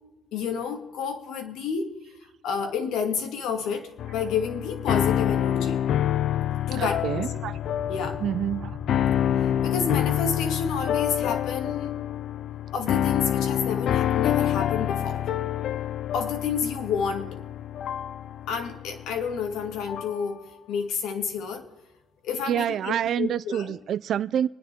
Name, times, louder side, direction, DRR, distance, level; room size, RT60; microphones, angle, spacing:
voice 1, 0.3-1.9 2.4-5.8 6.7-7.3 7.9-8.2 9.6-11.9 12.7-15.2 16.1-17.4 18.5-20.4 20.7-21.7 22.2-23.7, left 6 dB, 75° left, 2.3 m, -30 dB
sound 1, 4.0-20.2, left 10 dB, 60° left, 0.4 m, -27 dB
sound 2, 6.7-10.4, left 2 dB, 30° left, 1.3 m, -41 dB
voice 2, 6.7-7.5 8.2-8.8 22.5-24.5, right 10 dB, 60° right, 0.4 m, -27 dB
25.0 x 10.0 x 3.6 m
cardioid pair, 120°, 0 cm